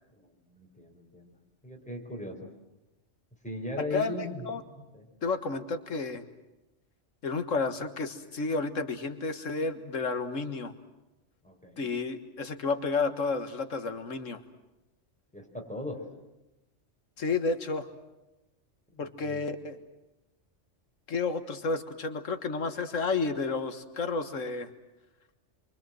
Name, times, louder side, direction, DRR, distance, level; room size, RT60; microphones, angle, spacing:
voice 1, 0.2-1.3 1.6-2.5 3.4-4.4 4.7-5.1 11.4-11.9 15.3-16.1 18.9-19.4, left 2 dB, 5° left, 0 dB, 4.8 m, -39 dB
voice 2, 3.8-4.6 5.2-6.3 7.2-10.7 11.8-14.4 17.2-17.9 19.0-19.8 21.1-24.7, left 4 dB, 90° left, 8 dB, 1.9 m, -31 dB
27.5 x 24.0 x 7.7 m, 0.99 s
omnidirectional pair, 1.3 m